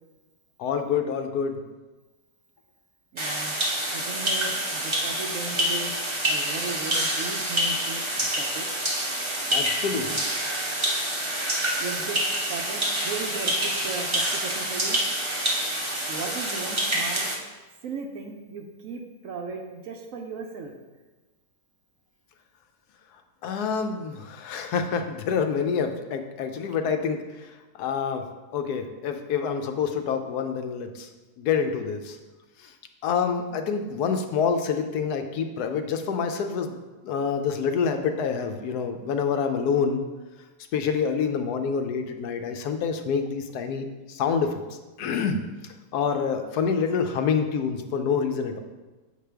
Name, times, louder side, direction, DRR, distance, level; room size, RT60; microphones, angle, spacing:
voice 1, 0.6-1.6 9.5-10.2 23.4-28.2 28.5-31.1 31.4-32.2 32.6-32.7 33.0-40.0 40.7-44.6 45.0-45.4 45.9-48.6, left 6 dB, 75° left, 6 dB, 1.1 m, -27 dB
voice 2, 3.1-3.6 3.9-5.9 6.2-8.7 9.9-10.3 11.8-12.2 12.5-15.0 16.1-17.3 17.8-20.7, right 4 dB, 65° right, 3 dB, 0.9 m, -36 dB
sound 1, 3.2-17.4, right 1 dB, 25° right, 0.6 m, -27 dB
7.2 x 5.0 x 3.4 m, 1.2 s
omnidirectional pair, 1.7 m